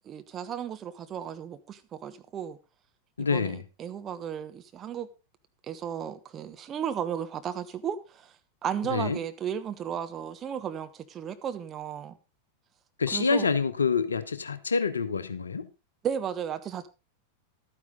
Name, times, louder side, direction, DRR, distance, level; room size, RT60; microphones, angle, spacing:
voice 1, 0.0-2.6 3.2-5.1 5.7-8.3 8.6-12.2 13.1-13.5 16.0-16.9, right 8 dB, 25° right, 1.2 m, -34 dB
voice 2, 3.2-3.6 8.8-9.2 13.0-15.7, left 5 dB, 75° left, 0.9 m, -27 dB
12.0 x 9.6 x 3.8 m
figure-of-eight pair, 90°, 0 cm